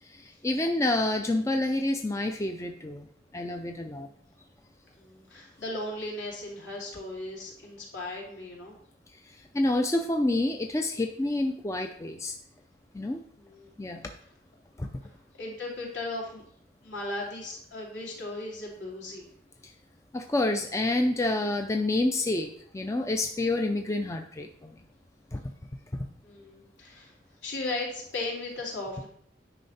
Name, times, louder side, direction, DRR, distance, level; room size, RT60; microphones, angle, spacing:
voice 1, 0.0-3.1 3.3-4.1 9.2-12.4 12.9-13.2 13.8-14.1 14.8-14.9 19.6-19.7 20.1-24.7 25.3-25.5 25.9-26.1, left 2 dB, 15° left, 5 dB, 0.4 m, -28 dB
voice 2, 5.0-8.8 13.4-13.7 15.4-16.4 16.8-19.3 26.2-27.1 27.4-29.1, left 2 dB, 70° left, -2 dB, 3.0 m, -37 dB
9.9 x 5.5 x 4.2 m, 0.65 s
head